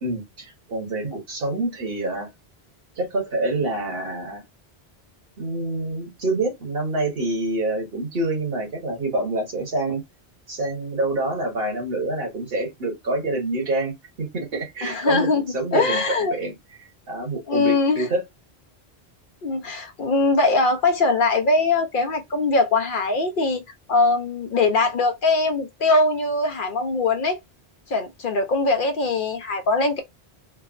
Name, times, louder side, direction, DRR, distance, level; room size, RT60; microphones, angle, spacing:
voice 1, 0.0-2.3 3.0-4.4 5.4-10.0 10.5-13.9 14.3-15.3 15.5-16.5 17.1-18.2, right 2 dB, 65° right, 1.4 m, -26 dB
voice 2, 14.8-16.3 17.5-18.1 19.4-23.6 23.9-27.4 27.9-30.0, left 3 dB, 60° left, 0.7 m, -21 dB
3.5 x 2.0 x 2.4 m
omnidirectional pair, 1.1 m